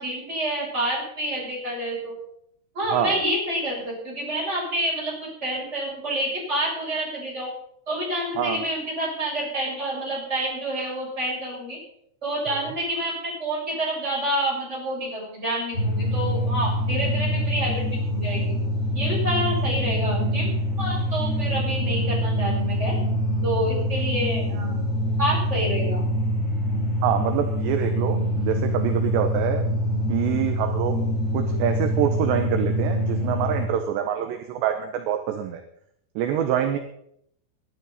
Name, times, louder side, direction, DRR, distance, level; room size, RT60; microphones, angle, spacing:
voice 1, 0.0-2.2 2.7-7.5 7.9-11.8 12.2-18.6 18.9-20.5 20.8-23.0 23.4-24.8 25.2-26.0, right 1 dB, 15° right, -5 dB, 7.7 m, -28 dB
sound 1, 15.7-33.7, equal, 35° left, 6.2 m, -25 dB
voice 2, 27.0-29.6 30.1-31.0 31.3-35.6 36.2-36.8, right 10 dB, 75° right, 6 dB, 2.9 m, -25 dB
21.5 x 11.5 x 4.2 m, 0.71 s
omnidirectional pair, 5.8 m